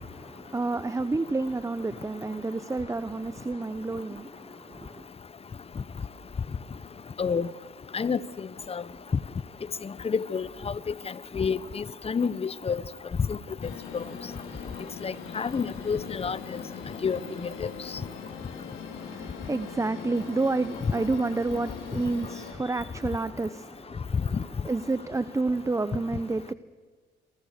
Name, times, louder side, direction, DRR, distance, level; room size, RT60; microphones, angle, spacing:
voice 1, 0.3-5.0 18.9-24.4 24.6-26.5, right 3 dB, 15° right, 14 dB, 0.8 m, -30 dB
voice 2, 9.8-10.7 11.3-12.8 13.3-13.4 13.9-14.0 15.0-16.6 17.0-17.7 20.8-20.9, left 6 dB, 30° left, 18 dB, 0.9 m, -29 dB
sound 1, 13.6-22.5, left 6 dB, 80° left, 4.8 m, -41 dB
28.0 x 24.0 x 6.7 m, 1.5 s
cardioid pair, 90°, 20 cm